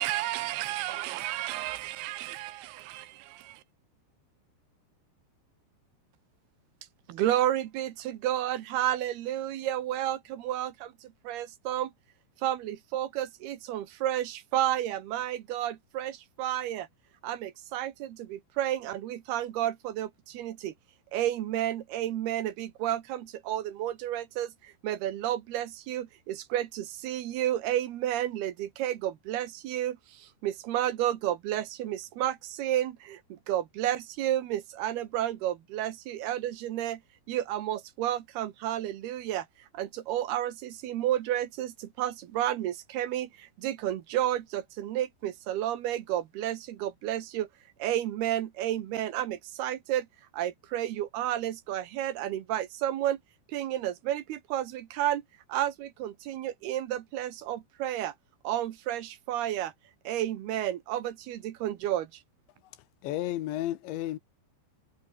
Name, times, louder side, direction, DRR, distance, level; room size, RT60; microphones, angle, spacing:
voice 1, 0.0-3.6, right 16 dB, 90° right, 3.4 m, -34 dB
voice 2, 7.1-11.9 12.4-16.9 17.2-20.7 21.1-37.0 37.3-39.5 39.7-47.5 47.8-50.1 50.3-53.2 53.5-55.2 55.5-58.1 58.4-59.7 60.0-62.1, right 12 dB, 70° right, 3.1 m, -31 dB
voice 3, 63.0-64.2, left 14 dB, 85° left, 3.7 m, -32 dB
omnidirectional pair, 5.1 m